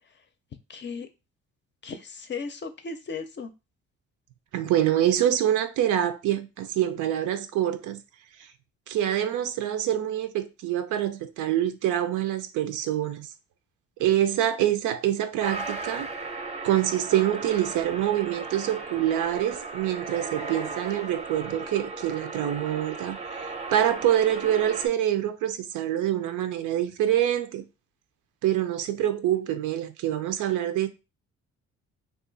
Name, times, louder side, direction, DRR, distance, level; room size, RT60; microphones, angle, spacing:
voice 1, 0.7-1.1 1.8-3.5, left 4 dB, 40° left, 0.5 m, -36 dB
voice 2, 4.5-8.0 8.4-8.5 8.9-13.3 14.0-16.1 16.6-27.6 28.4-30.9, right 11 dB, 80° right, 0.5 m, -26 dB
sound 1, 15.4-24.9, right 4 dB, 20° right, 0.6 m, -36 dB
2.5 x 2.3 x 3.8 m
cardioid pair, 90°, 30 cm